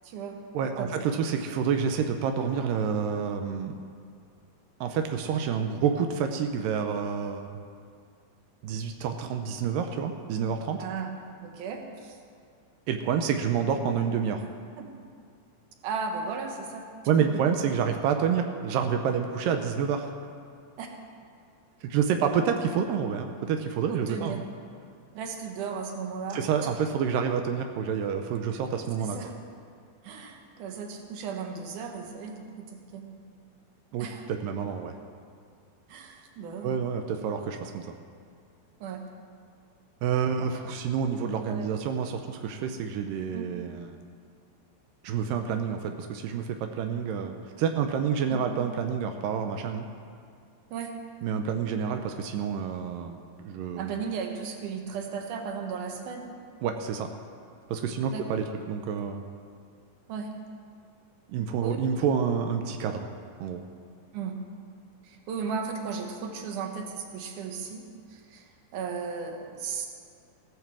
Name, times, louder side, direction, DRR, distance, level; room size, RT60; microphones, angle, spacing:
voice 1, 0.0-0.4 0.6-1.0 10.8-11.1 11.4-12.2 14.8-14.9 15.8-16.9 20.8-21.0 23.9-24.4 25.1-26.7 29.0-29.3 30.0-33.2 34.0-34.2 34.6-34.7 35.9-36.8 38.8-39.0 40.4-40.5 41.5-41.7 43.3-43.5 48.3-48.5 50.7-50.9 53.7-56.2 58.1-58.2 60.1-60.3 61.6-61.8 64.1-64.4 65.0-68.5 68.7-69.9, right 5 dB, 60° right, 3 dB, 2.3 m, -35 dB
voice 2, 0.5-3.8 4.8-7.6 8.6-10.8 12.9-14.4 17.1-20.1 21.8-24.4 26.3-29.2 33.9-34.9 36.6-37.9 40.0-44.0 45.0-49.9 51.2-53.9 56.6-57.1 57.7-59.3 61.3-63.1 63.4-63.6, right 7 dB, 85° right, 5 dB, 1.9 m, -28 dB
16.0 x 9.1 x 7.5 m, 2.3 s
omnidirectional pair, 5.0 m